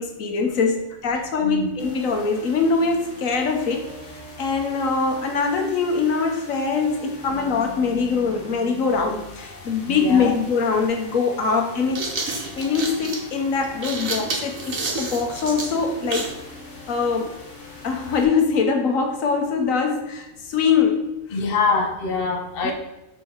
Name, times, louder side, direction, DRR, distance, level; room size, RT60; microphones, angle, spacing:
voice 1, 0.0-3.9 4.4-12.0 12.6-16.3 16.9-17.4 17.8-21.4 22.6-22.7, left 5 dB, 90° left, 4 dB, 1.4 m, -23 dB
voice 2, 1.4-1.7 9.9-10.3 21.3-22.7, left 4 dB, 50° left, 3 dB, 1.0 m, -24 dB
sound 1, 1.8-18.2, left 2 dB, 70° left, 1.8 m, -41 dB
sound 2, 10.6-10.7 11.6-16.4, right 3 dB, 90° right, 1.6 m, -30 dB
6.5 x 4.3 x 4.5 m, 0.97 s
omnidirectional pair, 1.4 m